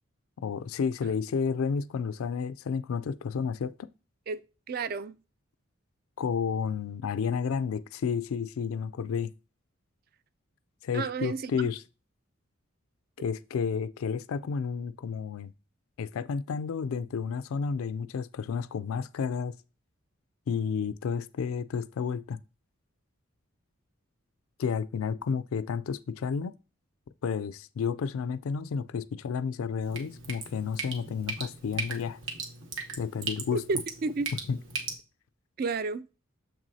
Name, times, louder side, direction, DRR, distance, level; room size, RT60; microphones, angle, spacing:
voice 1, 0.4-3.9 6.2-9.3 10.8-11.8 13.2-15.5 16.0-19.5 20.5-22.4 24.6-26.5 27.2-32.2 33.0-33.6 34.5-34.6, left 6 dB, 75° left, 0.3 m, -31 dB
voice 2, 4.7-5.1 10.9-11.5 33.5-34.3 35.6-36.0, right 4 dB, 45° right, 0.3 m, -31 dB
Drip, 29.8-34.9, right 4 dB, 65° right, 1.1 m, -38 dB
7.0 x 6.0 x 2.7 m
head